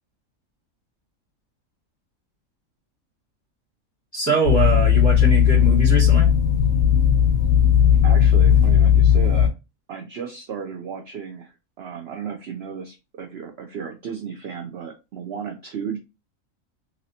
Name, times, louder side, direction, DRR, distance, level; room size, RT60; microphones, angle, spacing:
voice 1, 4.1-6.3, right 2 dB, 10° left, 1.5 m, -23 dB
sound 1, 4.4-9.5, left 9 dB, 70° left, 1.0 m, -16 dB
voice 2, 8.0-9.5 9.9-16.0, right 7 dB, 60° right, 0.7 m, -34 dB
3.0 x 2.8 x 2.7 m
omnidirectional pair, 1.5 m